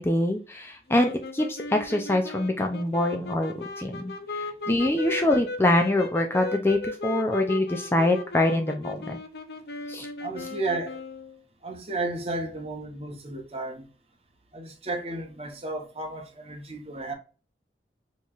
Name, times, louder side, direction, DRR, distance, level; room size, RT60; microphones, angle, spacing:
voice 1, 0.0-9.2 9.9-10.1, left 1 dB, 15° left, 0.3 m, -25 dB
sound 1, 0.9-11.4, left 3 dB, 65° left, 0.6 m, -37 dB
voice 2, 10.2-11.0 11.6-13.9 14.5-17.1, right 2 dB, 35° right, 0.8 m, -33 dB
4.5 x 3.0 x 2.4 m
head